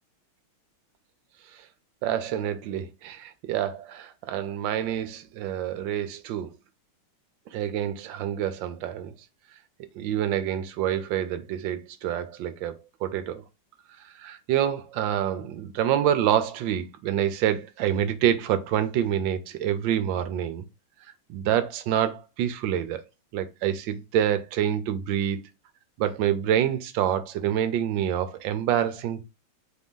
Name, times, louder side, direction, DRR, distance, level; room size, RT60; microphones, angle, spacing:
voice 1, 2.0-6.6 7.5-9.1 9.9-13.4 14.0-20.6 21.3-23.0 23.3-25.5 26.0-29.2, right 10 dB, 70° right, 1.2 m, -27 dB
4.4 x 2.6 x 3.6 m
omnidirectional pair, 2.3 m